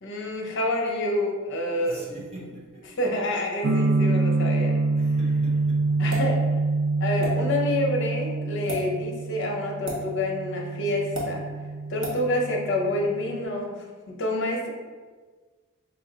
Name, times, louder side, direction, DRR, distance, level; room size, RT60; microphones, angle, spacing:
voice 1, 0.0-2.1 3.0-4.8 6.0-6.4 7.0-11.5 11.9-14.7, left 1 dB, 60° left, 1 dB, 0.7 m, -28 dB
voice 2, 1.8-2.9 5.0-6.0, right 1 dB, 30° right, -5 dB, 0.9 m, -43 dB
sound 1, 3.6-13.4, right 3 dB, 55° right, 0.3 m, -26 dB
sound 2, 6.1-6.3 7.2-7.3 8.6-8.8 9.9-10.0 11.1-11.3 12.0-12.2, equal, 80° right, 1.4 m, -31 dB
5.5 x 2.1 x 3.8 m, 1.5 s
head